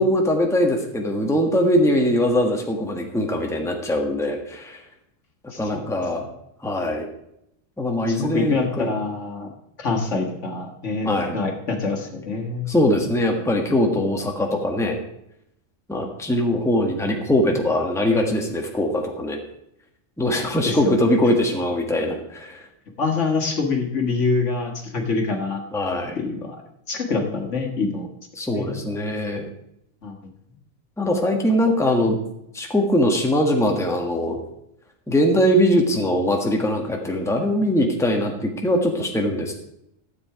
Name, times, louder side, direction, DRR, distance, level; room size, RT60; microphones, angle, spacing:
voice 1, 0.0-4.8 5.6-6.3 6.6-7.1 7.8-8.9 11.0-11.4 12.7-15.0 15.9-19.4 20.2-22.6 25.7-26.2 28.3-29.4 31.0-32.2 32.5-34.4 35.1-39.6, left 1 dB, ahead, 1 dB, 1.4 m, -21 dB
voice 2, 5.5-5.8 8.1-9.5 9.8-12.7 20.7-21.0 23.0-25.6 26.2-26.6 26.9-28.1 28.5-28.8 30.0-30.2, left 4 dB, 65° left, 3 dB, 1.9 m, -25 dB
12.5 x 7.7 x 4.8 m, 0.79 s
omnidirectional pair, 1.3 m